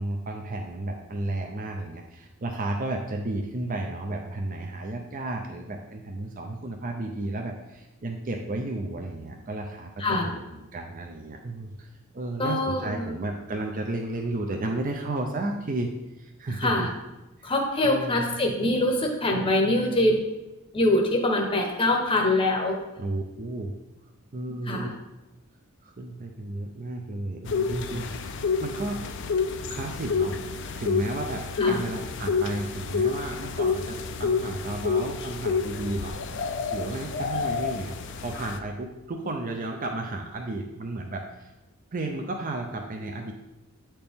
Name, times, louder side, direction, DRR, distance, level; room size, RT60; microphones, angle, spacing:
voice 1, 0.0-15.9 16.2-16.9 17.4-17.5 17.8-18.4 23.0-23.7 24.3-24.9 25.8-29.0 29.7-36.4 36.7-41.5 41.9-43.3, right 2 dB, 40° right, 2 dB, 0.5 m, -33 dB
voice 2, 12.4-13.1 16.6-16.9 17.4-20.2 20.7-22.8 24.7-24.9 31.6-31.8, left 1 dB, 25° left, 1 dB, 0.8 m, -24 dB
sound 1, 27.5-38.6, left 5 dB, 55° left, 0.5 m, -29 dB
8.6 x 4.4 x 3.5 m, 1.0 s
head